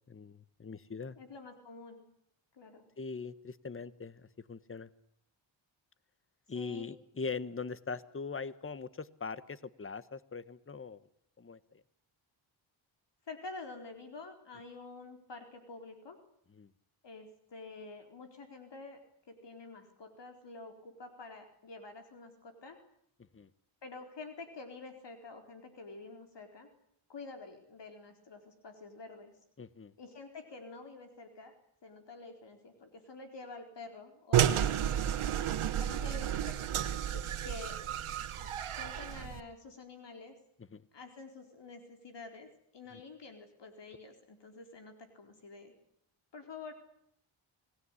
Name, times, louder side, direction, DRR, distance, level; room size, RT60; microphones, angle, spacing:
voice 1, 0.1-1.2 3.0-4.9 6.5-11.0 11.4-11.8 16.6-16.7 23.3-23.5 29.6-29.9 34.8-35.2 37.1-37.3 40.7-40.8, left 4 dB, 25° left, 16 dB, 1.3 m, -41 dB
voice 2, 1.2-2.0 2.5-2.8 6.5-6.9 13.3-16.2 17.0-19.0 19.3-22.8 23.8-26.7 27.1-29.3 30.0-31.5 31.8-34.9 35.7-36.7 37.4-37.8 38.3-40.4 40.9-45.7 46.3-46.7, left 3 dB, 55° left, 5 dB, 4.3 m, -48 dB
sound 1, 34.3-39.4, right 10 dB, 75° right, 1.7 m, -31 dB
24.5 x 18.5 x 9.9 m, 0.70 s
cardioid pair, 80°, 50 cm